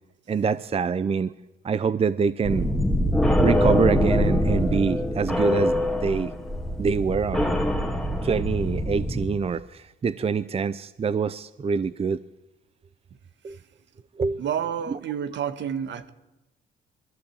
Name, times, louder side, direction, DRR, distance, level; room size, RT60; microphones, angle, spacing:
voice 1, 0.3-1.3 1.6-2.7 3.4-5.7 6.0-6.3 6.8-7.5 8.2-12.2 13.4-13.6 14.2-14.4 14.9-15.0, right 5 dB, 30° right, 0.6 m, -25 dB
sound 1, 2.4-9.3, left 1 dB, ahead, 2.4 m, -24 dB
voice 2, 14.4-16.1, right 8 dB, 65° right, 1.5 m, -29 dB
21.5 x 14.5 x 8.7 m
cardioid pair, 90°, 20 cm